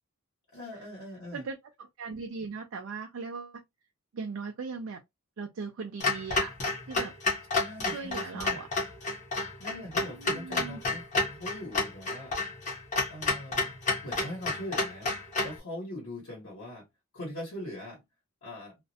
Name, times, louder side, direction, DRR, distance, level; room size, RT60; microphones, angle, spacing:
voice 1, 0.5-1.4 7.5-8.7 9.6-12.5 13.1-13.7 14.0-16.9 17.1-18.0 18.4-18.8, left 1 dB, 65° left, 1.1 m, -41 dB
voice 2, 1.3-3.6 4.1-5.0 5.4-6.5 6.9-7.1 7.9-8.7 10.0-10.8, right 4 dB, 60° right, 0.4 m, -38 dB
Clock, 6.0-15.6, left 3 dB, 35° left, 0.8 m, -30 dB
2.4 x 2.1 x 2.6 m
head